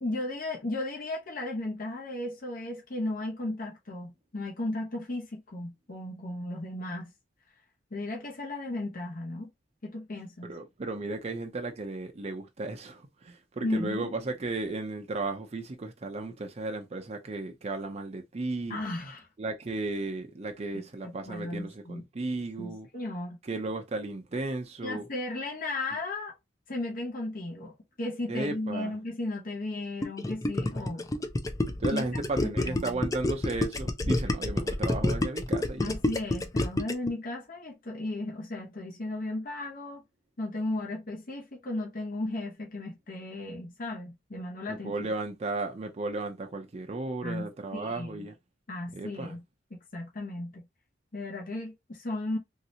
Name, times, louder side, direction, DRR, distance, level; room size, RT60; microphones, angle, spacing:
voice 1, 0.0-7.1 7.9-9.5 9.8-10.5 13.6-14.1 18.7-19.3 21.0-22.0 22.6-23.4 24.8-26.3 26.7-31.1 31.9-32.1 32.4-33.1 35.8-40.0 40.4-45.1 47.2-48.3 48.7-49.4 49.7-50.6 51.1-52.4, left 2 dB, 50° left, 0.8 m, -35 dB
voice 2, 10.4-18.8 19.4-22.9 23.4-25.0 28.3-28.9 31.8-35.9 44.7-48.3 48.9-49.4, right 2 dB, 35° right, 0.5 m, -34 dB
Gurgling, 30.0-37.1, left 1 dB, 20° left, 0.4 m, -28 dB
3.2 x 2.8 x 2.6 m
head